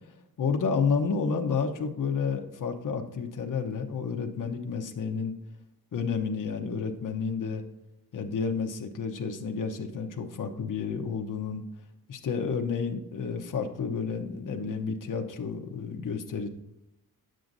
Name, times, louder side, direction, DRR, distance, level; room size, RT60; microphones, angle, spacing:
voice 1, 0.4-5.3 5.9-7.6 8.1-11.6 12.1-16.5, left 5 dB, 55° left, 4 dB, 0.9 m, -30 dB
9.7 x 7.7 x 2.6 m, 0.92 s
wide cardioid pair, 145°, 38 cm